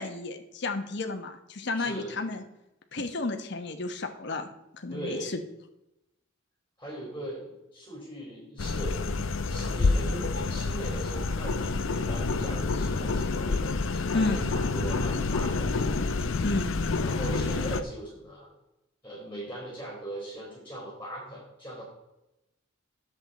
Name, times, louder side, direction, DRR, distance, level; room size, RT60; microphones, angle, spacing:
voice 1, 0.0-2.4 2.9-4.5 4.7-5.4 14.1-14.4 16.4-16.7, left 3 dB, 55° left, 6 dB, 1.1 m, -31 dB
voice 2, 1.7-2.2 4.9-5.3 6.8-9.0 9.5-15.9 17.0-18.5 19.0-21.8, right 1 dB, 10° left, -5 dB, 4.2 m, -39 dB
sound 1, 8.6-17.8, left 3 dB, 75° left, 0.6 m, -28 dB
10.5 x 7.7 x 4.2 m, 0.91 s
head